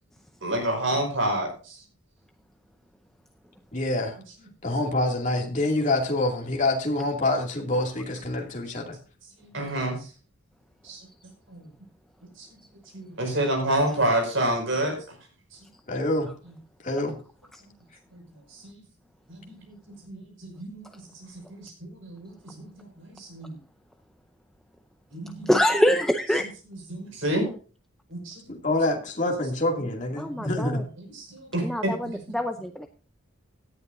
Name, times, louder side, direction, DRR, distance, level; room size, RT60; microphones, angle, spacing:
voice 1, 0.4-1.8 9.4-10.1 10.8-11.7 12.4-12.5 12.9-15.2 15.5-15.6 18.1-18.2 18.5-18.8 19.3-19.7 20.0-22.7 23.0-23.6 25.1-25.6 26.4-27.5 28.1-28.4 30.3-30.7 31.0-32.4, right 1 dB, 65° right, 3 dB, 5.7 m, -30 dB
voice 2, 3.7-4.2 4.6-9.0 15.9-16.3 16.8-17.2 28.5-30.8, left 2 dB, 35° left, 1 dB, 2.5 m, -26 dB
voice 3, 25.5-26.4 27.4-27.5 30.2-30.8 31.6-32.9, equal, ahead, 5 dB, 0.6 m, -25 dB
17.5 x 11.0 x 2.6 m, 0.38 s
head